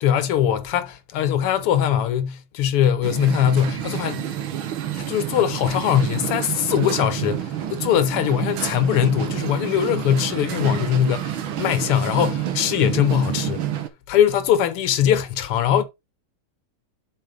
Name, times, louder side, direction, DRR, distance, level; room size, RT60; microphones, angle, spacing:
voice 1, 0.0-4.2 4.9-13.6 14.1-15.8, left 10 dB, 85° left, 1.9 m, -21 dB
sound 1, 3.0-13.9, right 10 dB, 70° right, 1.8 m, -29 dB
7.7 x 5.1 x 5.0 m
omnidirectional pair, 2.4 m